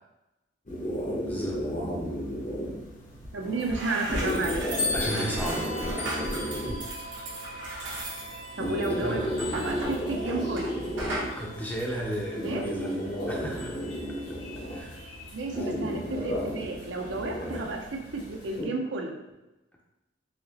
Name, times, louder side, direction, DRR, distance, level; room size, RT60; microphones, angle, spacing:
sound 1, 0.7-18.7, equal, 40° left, 0.8 m, -34 dB
voice 1, 1.2-1.7 4.9-5.7 8.8-9.7 10.1-10.2 11.3-13.9 14.7-15.0 15.6-15.7, equal, 10° left, -2 dB, 0.5 m, -35 dB
sound 2, 3.2-3.3 3.6-10.7 11.0-11.3, right 1 dB, 90° right, 1.0 m, -36 dB
voice 2, 3.3-4.6 8.6-9.2 9.5-10.7 12.4-12.6 15.3-19.2, right 2 dB, 70° right, 2 dB, 0.6 m, -32 dB
sound 3, 3.4-18.6, left 2 dB, 60° left, 1.3 m, -40 dB
4.3 x 2.8 x 2.8 m, 0.99 s
head